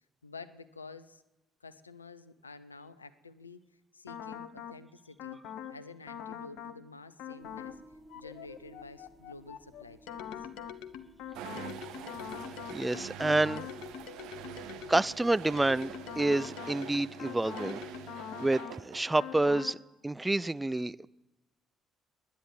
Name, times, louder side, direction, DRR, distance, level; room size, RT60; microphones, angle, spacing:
voice 1, 0.2-1.2 1.6-3.6 3.9-5.4 5.7-7.8 8.1-10.2, left 3 dB, 85° left, 14 dB, 0.5 m, -49 dB
sound 1, 4.1-4.8 5.2-5.8 6.1-6.8 7.2-7.8 8.1-15.2 15.6-18.8 19.2-19.8, left 9 dB, 65° left, 0.8 m, -43 dB
sound 2, 7.4-16.3, right 1 dB, 40° right, 3.1 m, -59 dB
sound 3, 11.3-19.6, right 9 dB, 65° right, 0.9 m, -45 dB
voice 2, 12.7-13.7 14.9-17.8 18.4-19.8 20.0-21.1, right 2 dB, 15° right, 18 dB, 0.4 m, -28 dB
10.5 x 10.0 x 9.5 m, 1.0 s
figure-of-eight pair, 45°, 0 cm